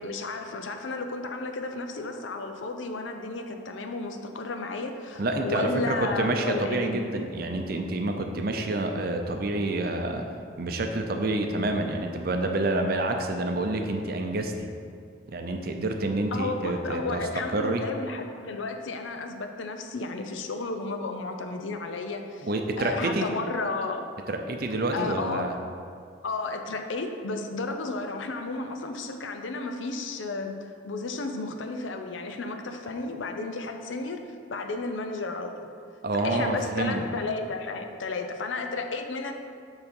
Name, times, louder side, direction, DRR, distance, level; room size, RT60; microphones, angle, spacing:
voice 1, 0.0-7.0 16.3-22.5 22.8-24.1 24.9-25.5 26.2-30.6 30.8-34.2 34.5-35.5 36.2-39.3, left 3 dB, 85° left, 5 dB, 0.6 m, -33 dB
voice 2, 5.2-10.2 10.6-14.7 15.3-17.8 22.4-23.3 24.3-25.5 36.0-37.1, right 2 dB, 50° right, 4 dB, 0.6 m, -28 dB
7.1 x 3.9 x 5.3 m, 2.3 s
head